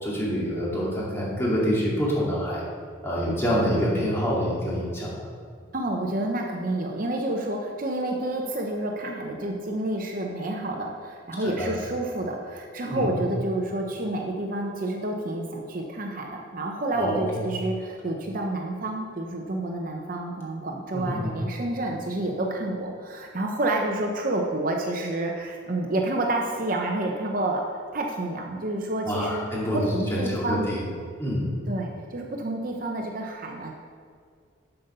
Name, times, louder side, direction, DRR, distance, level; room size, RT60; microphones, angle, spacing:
voice 1, 0.0-2.6 3.0-5.1 11.4-11.7 12.9-13.1 16.9-17.4 20.9-21.4 29.0-30.8 31.2-31.5, equal, 10° left, -6 dB, 2.2 m, -26 dB
voice 2, 5.7-29.4 29.7-30.7 31.7-33.7, right 1 dB, 45° right, 1 dB, 0.7 m, -29 dB
7.6 x 6.9 x 5.4 m, 2.2 s
head